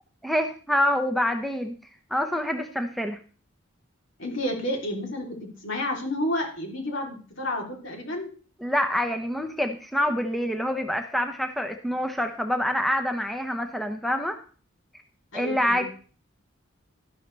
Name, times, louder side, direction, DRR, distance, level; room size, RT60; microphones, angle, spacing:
voice 1, 0.2-1.7 2.1-3.2 8.6-14.4 15.3-15.8, equal, ahead, 5 dB, 0.8 m, -26 dB
voice 2, 4.2-8.3 15.3-15.8, left 1 dB, 65° left, 1 dB, 3.3 m, -30 dB
12.5 x 11.0 x 3.4 m, 0.39 s
head